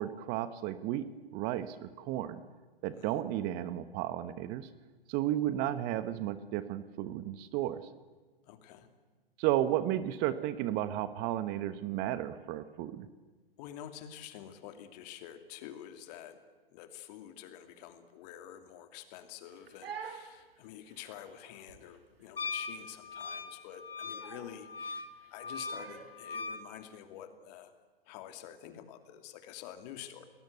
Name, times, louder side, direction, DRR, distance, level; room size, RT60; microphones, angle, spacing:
voice 1, 0.0-2.4 2.8-4.7 5.1-7.8 9.4-13.1, right 12 dB, 30° right, 14 dB, 1.1 m, -33 dB
voice 2, 8.4-8.9 13.6-16.4 16.7-27.7 28.1-30.3, left 10 dB, 40° left, 8 dB, 2.8 m, -48 dB
Crying sobbing, 19.5-26.3, right 6 dB, 75° right, 3.6 m, -49 dB
Wind instrument woodwind instrument, 22.4-26.6, left 4 dB, 70° left, 2.2 m, -40 dB
29.5 x 20.0 x 8.3 m, 1.3 s
figure-of-eight pair, 115°, 30 cm